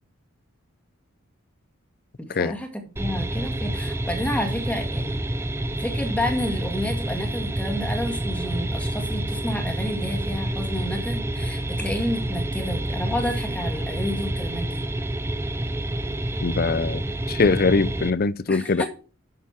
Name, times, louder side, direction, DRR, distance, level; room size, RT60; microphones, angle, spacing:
voice 1, 2.2-2.7 3.0-5.5 5.8-14.9 18.5-18.9, left 1 dB, 5° left, 1.9 m, -30 dB
sound 1, 3.0-18.1, right 1 dB, 10° right, 0.5 m, -28 dB
voice 2, 16.4-17.0 17.3-18.8, left 4 dB, 45° left, 0.4 m, -22 dB
11.0 x 6.7 x 4.5 m
head